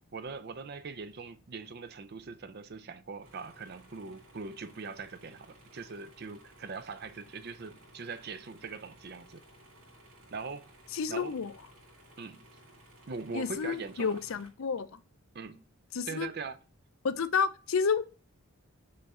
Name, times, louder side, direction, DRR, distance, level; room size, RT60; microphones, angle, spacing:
voice 1, 0.1-9.4 10.3-10.7 11.1-11.4 12.2-12.4 13.1-14.2 15.3-15.6 16.1-16.6, right 4 dB, 45° right, 0.5 m, -41 dB
sound 1, 3.2-14.5, right 1 dB, 85° right, 2.4 m, -58 dB
voice 2, 10.9-11.5 13.3-15.0 15.9-16.3 17.0-18.0, left 5 dB, 65° left, 0.5 m, -30 dB
6.4 x 3.5 x 4.2 m
head